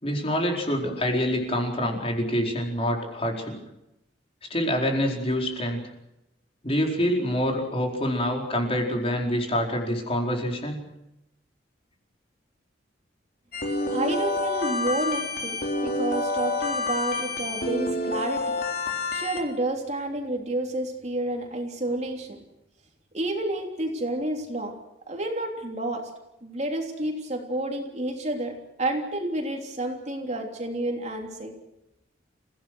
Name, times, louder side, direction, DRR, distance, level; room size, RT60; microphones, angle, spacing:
voice 1, 0.0-3.6 4.5-5.8 6.6-10.9, equal, 30° left, 1 dB, 4.6 m, -26 dB
sound 1, 13.5-19.4, left 2 dB, 55° left, 3.9 m, -28 dB
voice 2, 13.9-18.6 19.1-22.4 23.1-24.8 25.1-26.1 26.4-31.5, right 1 dB, 40° right, 2 dB, 3.4 m, -30 dB
29.5 x 17.0 x 6.4 m, 0.87 s
head